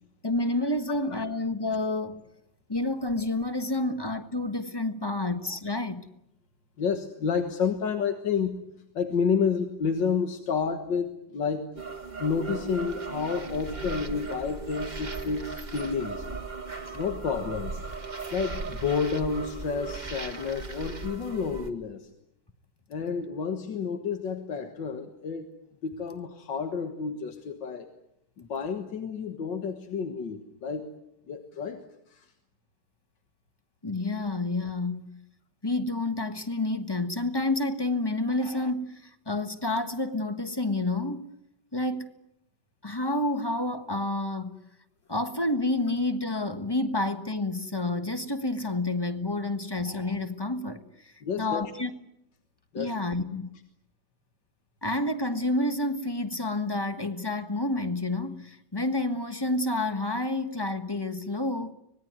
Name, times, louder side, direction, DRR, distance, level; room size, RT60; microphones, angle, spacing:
voice 1, 0.2-2.2 2.7-6.1 18.2-18.3 33.8-35.2 35.6-41.3 41.7-42.1 42.8-44.6 45.1-51.9 52.7-53.5 54.8-61.7, left 2 dB, 15° left, 1.3 m, -29 dB
voice 2, 6.8-8.6 8.9-11.7 12.2-16.3 16.9-17.8 18.3-22.1 22.9-25.5 25.8-27.9 28.4-30.9 31.3-31.8 32.1-32.3 51.2-51.6 52.7-53.0, left 6 dB, 85° left, 2.2 m, -30 dB
sound 1, 11.8-21.7, right 4 dB, 25° right, 1.6 m, -37 dB
25.0 x 20.0 x 9.5 m
omnidirectional pair, 1.9 m